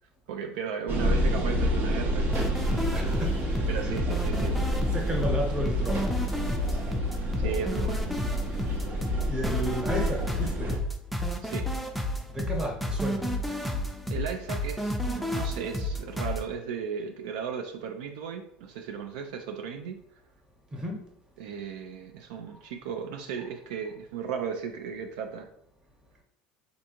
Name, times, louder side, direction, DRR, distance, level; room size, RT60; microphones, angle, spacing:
voice 1, 0.3-2.6 3.7-4.6 7.4-8.1 11.4-11.7 14.1-20.0 21.4-25.5, right 7 dB, 75° right, 0.3 m, -36 dB
sound 1, 0.9-10.8, equal, 50° right, 0.7 m, -29 dB
sound 2, 2.3-16.4, left 1 dB, ahead, 0.4 m, -31 dB
voice 2, 2.9-4.0 4.9-6.4 9.2-10.9 12.3-13.7 15.2-15.3 20.7-21.1 22.5-22.6, equal, 20° right, 1.0 m, -33 dB
3.3 x 2.6 x 2.8 m
hypercardioid pair, 80°, 4 cm